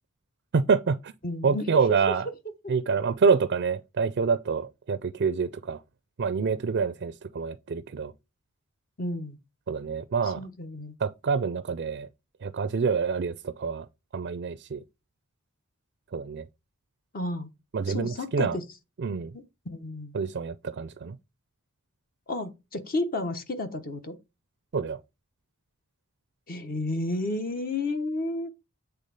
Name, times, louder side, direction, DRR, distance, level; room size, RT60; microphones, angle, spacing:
voice 1, 0.5-1.1 1.4-2.3 2.7-5.8 6.2-8.1 9.7-10.5 11.0-12.1 12.4-13.9 14.1-14.8 16.1-16.4 17.7-18.6 19.0-19.4 20.1-21.2 24.7-25.0, right 5 dB, 50° right, 0.4 m, -27 dB
voice 2, 1.2-2.0 9.0-9.4 10.2-10.9 17.1-17.5 17.9-18.6 19.3-20.1 22.3-24.1 26.5-28.5, left 2 dB, 40° left, 1.1 m, -32 dB
8.2 x 3.5 x 5.4 m
head